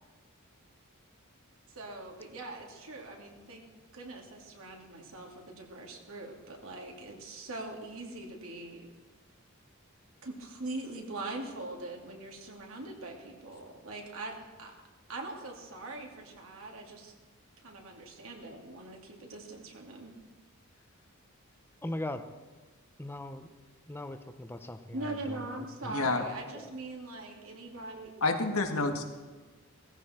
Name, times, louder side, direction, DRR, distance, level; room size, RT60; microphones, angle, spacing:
voice 1, 1.7-3.7 3.9-8.9 10.2-14.7 15.1-17.1 17.6-20.2 24.9-28.1, right 2 dB, 75° right, 1 dB, 2.7 m, -42 dB
voice 2, 21.8-22.2 23.0-23.5 23.9-26.7, left 1 dB, 10° left, 8 dB, 0.9 m, -40 dB
voice 3, 25.9-26.2 28.2-29.0, left 3 dB, 90° left, 4 dB, 1.8 m, -28 dB
17.5 x 15.0 x 4.5 m, 1.3 s
head